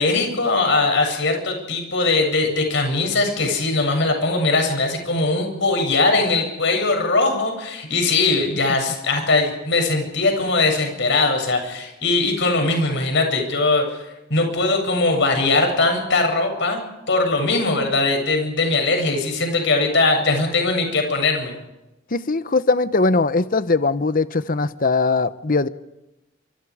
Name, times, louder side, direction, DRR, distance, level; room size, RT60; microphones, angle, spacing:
voice 1, 0.0-14.0 14.3-21.5, left 3 dB, 65° left, 4 dB, 7.8 m, -20 dB
voice 2, 22.1-25.7, left 3 dB, 45° left, 13 dB, 1.0 m, -20 dB
28.0 x 27.5 x 5.0 m, 0.97 s
head